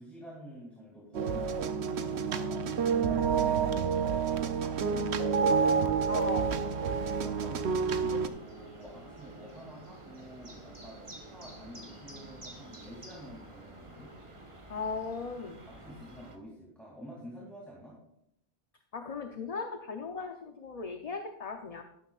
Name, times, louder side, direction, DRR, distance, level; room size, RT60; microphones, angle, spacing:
voice 1, 0.0-3.6 7.2-14.1 15.7-18.0, equal, ahead, -5 dB, 2.7 m, -49 dB
sound 1, 1.2-8.3, right 6 dB, 80° right, 1.0 m, -28 dB
sound 2, 5.5-16.4, right 1 dB, 30° right, 1.5 m, -49 dB
voice 2, 6.1-6.5 14.7-15.6 18.9-21.8, left 4 dB, 40° left, 5 dB, 0.8 m, -37 dB
13.0 x 12.0 x 2.4 m, 0.79 s
omnidirectional pair, 1.1 m